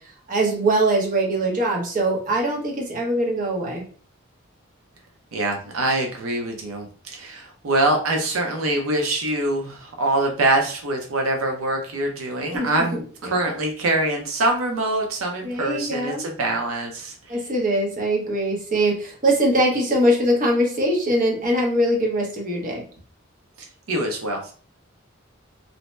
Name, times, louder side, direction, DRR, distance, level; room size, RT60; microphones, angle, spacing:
voice 1, 0.3-3.8 12.5-13.4 15.4-16.2 17.3-22.8, right 1 dB, 40° right, -1 dB, 0.7 m, -22 dB
voice 2, 5.3-17.1 23.9-24.5, right 2 dB, 85° right, 2 dB, 0.6 m, -24 dB
2.7 x 2.1 x 3.0 m, 0.43 s
head